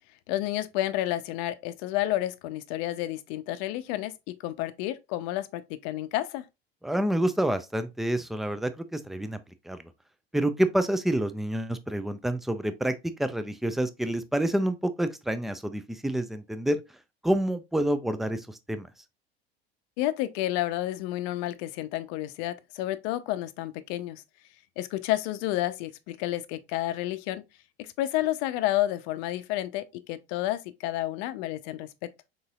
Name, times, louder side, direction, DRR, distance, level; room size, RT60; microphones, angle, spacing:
voice 1, 0.3-6.4 20.0-24.2 24.8-27.4 27.8-32.1, left 14 dB, 55° left, 0.6 m, -30 dB
voice 2, 6.8-9.4 9.7-9.8 10.3-12.9 13.2-16.8 17.2-18.9, right 1 dB, ahead, 0.3 m, -28 dB
4.0 x 3.8 x 2.3 m
hypercardioid pair, 80°, 31 cm